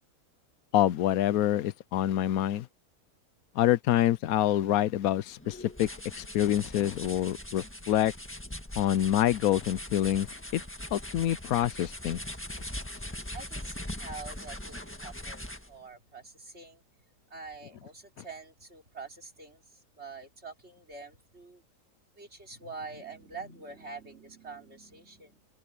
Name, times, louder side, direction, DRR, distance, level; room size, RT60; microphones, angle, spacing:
voice 1, 0.7-2.7 3.6-5.9 6.2-8.1 8.8-10.3 10.5-10.6 10.9-12.2, left 12 dB, 80° left, 1.1 m, -26 dB
sound 1, 5.4-15.8, left 1 dB, 10° left, 1.6 m, -41 dB
voice 2, 13.3-16.8 17.3-21.6 22.2-25.5, right 4 dB, 50° right, 4.7 m, -46 dB
omnidirectional pair, 1.5 m